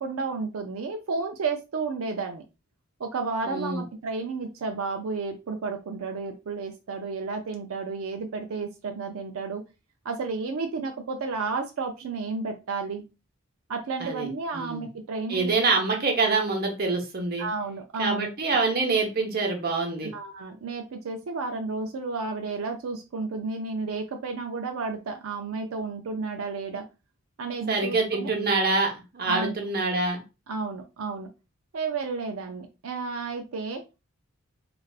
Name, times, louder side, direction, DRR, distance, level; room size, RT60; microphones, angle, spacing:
voice 1, 0.0-2.4 3.0-9.6 10.0-13.0 13.7-15.5 17.4-18.3 20.0-26.8 27.4-28.3 29.3-29.5 30.5-31.3 31.7-33.8, right 4 dB, 90° right, 4 dB, 0.4 m, -32 dB
voice 2, 3.4-3.8 14.0-14.3 14.5-14.8 15.3-17.4 18.0-20.1 27.7-30.2, right 3 dB, 45° right, 2 dB, 0.9 m, -25 dB
3.3 x 2.5 x 2.4 m, 0.28 s
head